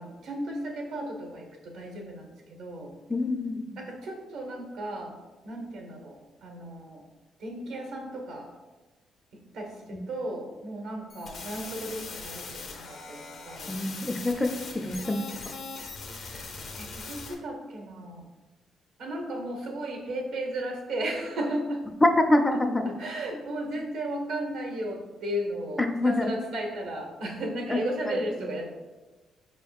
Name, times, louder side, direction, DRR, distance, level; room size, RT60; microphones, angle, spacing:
voice 1, 0.0-2.9 3.8-5.2 5.4-7.1 7.4-8.5 9.5-13.8 16.1-18.2 19.0-21.8 22.8-28.7, right 1 dB, 80° right, 2 dB, 0.9 m, -35 dB
voice 2, 3.1-3.6 9.9-10.0 13.7-14.5 14.7-15.2 22.0-22.9 25.8-26.3 27.7-27.8 28.1-28.2, left 2 dB, 15° left, 5 dB, 0.4 m, -25 dB
sound 1, 11.1-17.3, left 4 dB, 65° left, 0.6 m, -40 dB
4.6 x 3.5 x 2.3 m, 1.2 s
cardioid pair, 90°, 0 cm